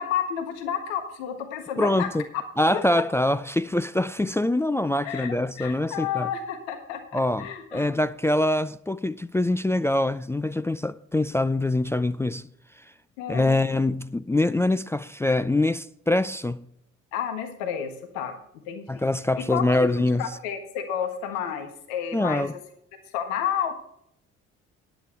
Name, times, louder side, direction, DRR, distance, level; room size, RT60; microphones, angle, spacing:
voice 1, 0.0-2.1 5.0-7.9 13.2-13.6 17.1-18.4 18.7-19.0 19.4-19.9 20.2-22.5 23.1-23.8, left 8 dB, 70° left, 1.5 m, -31 dB
voice 2, 1.8-2.3 2.6-6.3 7.1-12.4 13.3-16.6 18.9-20.3 22.1-22.5, left 1 dB, 5° left, 0.4 m, -24 dB
14.0 x 11.0 x 3.3 m
figure-of-eight pair, 45°, 37 cm